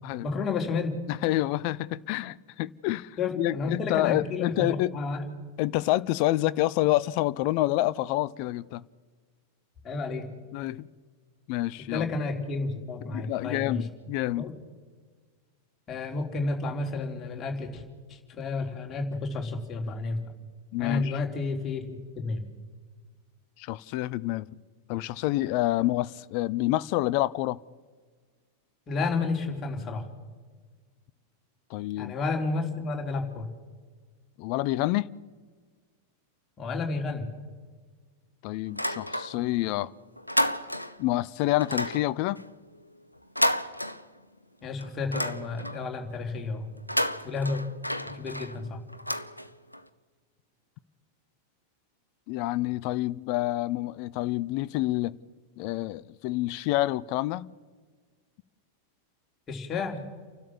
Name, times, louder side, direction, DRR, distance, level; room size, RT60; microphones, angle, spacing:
voice 1, 0.2-1.0 3.2-5.2 9.8-10.3 11.9-13.8 14.4-14.5 15.9-17.8 18.1-20.2 20.8-22.4 28.9-30.1 32.0-33.5 36.6-37.3 44.6-46.7 47.2-47.6 48.1-48.8 59.5-60.0, left 3 dB, 25° left, 3.5 m, -31 dB
voice 2, 1.1-4.9 5.6-8.8 10.5-10.9 11.5-12.1 13.1-14.5 20.7-21.2 23.6-24.5 24.9-27.6 31.7-32.1 34.4-35.1 38.4-39.9 41.0-42.4 52.3-55.2 55.6-57.5, left 16 dB, 45° left, 0.6 m, -28 dB
sound 1, 38.7-39.6 39.9-41.1 41.6-44.4 44.8-45.9 46.7-49.8, equal, 90° left, 0.9 m, -31 dB
29.5 x 12.5 x 7.2 m
figure-of-eight pair, 90°, 0 cm